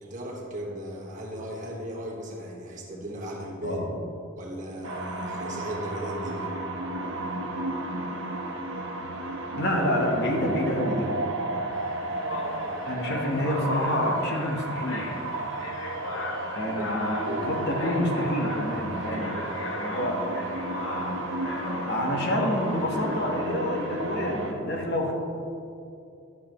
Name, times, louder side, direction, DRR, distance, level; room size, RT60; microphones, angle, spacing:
voice 1, 0.0-3.8 4.4-6.5 16.6-16.9 17.2-17.5 19.1-19.4, equal, 40° right, -3 dB, 1.4 m, -37 dB
sound 1, 4.8-24.5, right 2 dB, 65° right, 1.1 m, -33 dB
voice 2, 9.6-11.1 12.9-15.1 16.6-19.3 19.8-20.3 21.8-25.1, left 1 dB, 55° left, 0 dB, 1.1 m, -27 dB
sound 2, 11.7-23.2, left 2 dB, 75° left, 0.8 m, -37 dB
11.0 x 7.3 x 3.0 m, 2.6 s
head